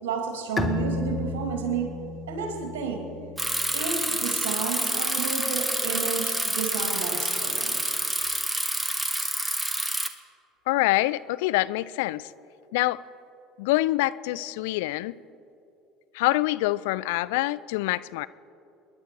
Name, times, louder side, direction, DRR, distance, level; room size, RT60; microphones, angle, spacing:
voice 1, 0.0-3.1 3.7-7.8, right 6 dB, 70° right, 4 dB, 2.7 m, -31 dB
Bowed string instrument, 0.6-4.0, left 3 dB, 20° left, 1.4 m, -33 dB
Bicycle, 3.4-10.1, right 1 dB, 10° right, 1.4 m, -28 dB
voice 2, 10.7-12.3 12.7-13.0 13.6-15.2 16.1-18.3, left 18 dB, 65° left, 17 dB, 0.3 m, -25 dB
27.0 x 11.0 x 4.8 m, 2.8 s
figure-of-eight pair, 65°, 0 cm